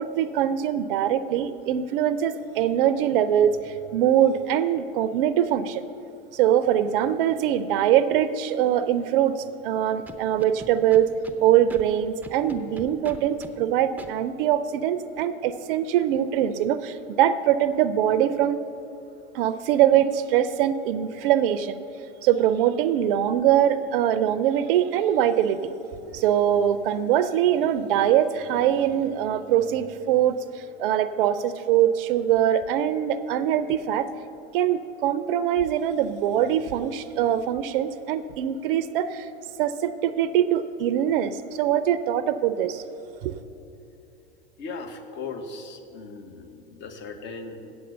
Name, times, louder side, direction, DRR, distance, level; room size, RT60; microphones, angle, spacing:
voice 1, 0.0-5.8 6.3-11.1 11.4-18.6 19.3-21.8 22.2-25.7 26.1-34.1 34.5-39.3 39.6-42.8 43.2-43.3, right 10 dB, 65° right, 13 dB, 0.5 m, -23 dB
Scratching (performance technique), 10.1-11.4 11.7-11.8 12.2-13.5 14.0-14.1, right 1 dB, 5° right, 0.5 m, -40 dB
voice 2, 44.6-47.8, left 4 dB, 40° left, 7 dB, 1.1 m, -38 dB
8.1 x 7.8 x 6.7 m, 2.7 s
hypercardioid pair, 95°, 30 cm